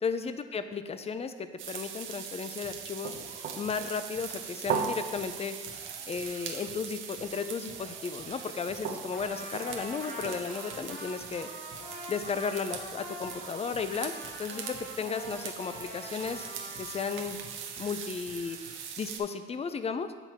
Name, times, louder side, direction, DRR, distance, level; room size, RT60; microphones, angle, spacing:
voice 1, 0.0-3.2 3.6-5.6 6.1-11.8 12.1-14.1 14.4-16.5 16.8-17.4 17.8-18.6 19.0-20.1, left 5 dB, 30° left, 10 dB, 0.5 m, -34 dB
sound 1, 1.6-19.2, right 7 dB, 80° right, 0.8 m, -40 dB
sound 2, 2.6-18.9, right 2 dB, 40° right, 1.5 m, -53 dB
Trumpet, 9.1-17.2, left 1 dB, 55° left, 1.8 m, -45 dB
7.9 x 4.2 x 4.5 m, 1.5 s
cardioid pair, 90°, 20 cm